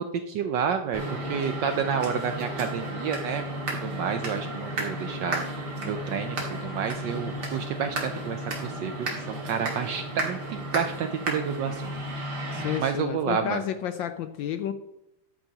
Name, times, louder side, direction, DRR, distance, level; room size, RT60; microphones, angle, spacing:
voice 1, 0.0-3.4 3.7-11.8 12.1-12.3 12.8-13.6, right 7 dB, 75° right, 8 dB, 1.0 m, -30 dB
sound 1, 0.9-12.8, right 1 dB, 50° right, 2.6 m, -33 dB
voice 2, 12.5-14.7, left 10 dB, 75° left, 10 dB, 1.1 m, -31 dB
12.5 x 8.8 x 2.9 m, 0.86 s
omnidirectional pair, 2.4 m